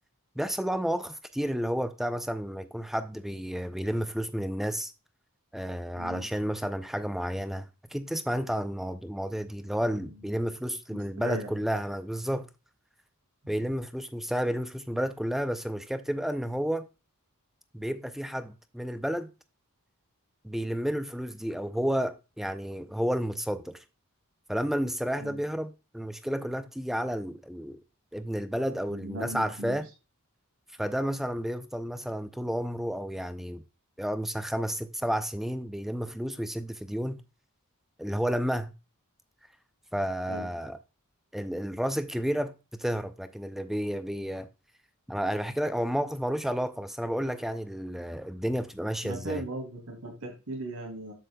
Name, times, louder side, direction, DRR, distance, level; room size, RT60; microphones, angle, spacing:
voice 1, 0.4-4.9 5.5-12.5 13.5-16.9 17.7-19.3 20.4-23.8 24.5-27.8 28.1-29.9 30.8-33.6 34.0-37.2 38.0-38.7 39.9-40.8 41.3-44.5 45.1-49.4, equal, ahead, 0.4 m, -31 dB
voice 2, 10.9-11.5 13.4-13.5 25.2-25.4 28.9-29.8 40.3-40.5 49.0-51.1, right 2 dB, 85° right, 2.8 m, -38 dB
7.6 x 7.3 x 2.2 m
head